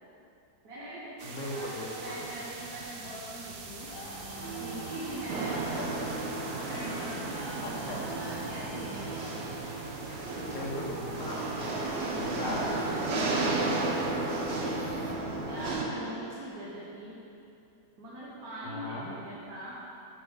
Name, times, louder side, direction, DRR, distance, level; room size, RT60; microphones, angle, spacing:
voice 1, 0.6-1.7 2.0-3.9 4.4-5.6 6.4-9.2 12.3-12.8 14.1-14.8 15.5-17.2 18.0-19.8, right 1 dB, 65° right, -8 dB, 1.7 m, -42 dB
voice 2, 1.2-2.2 5.5-5.9 7.6-8.0 10.5-11.8 12.2-12.6 18.6-19.1, left 1 dB, 75° left, -3 dB, 1.7 m, -38 dB
sound 1, 1.2-15.1, right 3 dB, 50° right, 0.7 m, -45 dB
sound 2, 3.8-16.5, right 2 dB, 60° left, 2.2 m, -45 dB
sound 3, 5.3-15.8, right 2 dB, 90° right, 1.5 m, -33 dB
8.0 x 5.0 x 5.6 m, 2.7 s
omnidirectional pair, 1.8 m